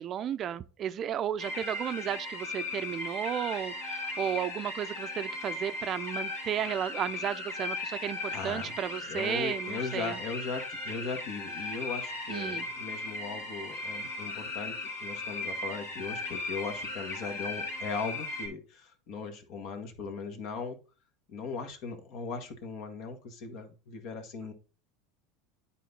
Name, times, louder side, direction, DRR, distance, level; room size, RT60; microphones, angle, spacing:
voice 1, 0.0-10.2 12.3-12.7, right 9 dB, 40° right, 0.5 m, -34 dB
sound 1, 1.4-18.5, left 2 dB, 80° left, 3.3 m, -37 dB
voice 2, 8.3-8.8 9.1-14.7 15.0-20.8 21.3-24.5, left 5 dB, 60° left, 1.7 m, -38 dB
9.3 x 4.2 x 4.0 m
hypercardioid pair, 100°, 0 cm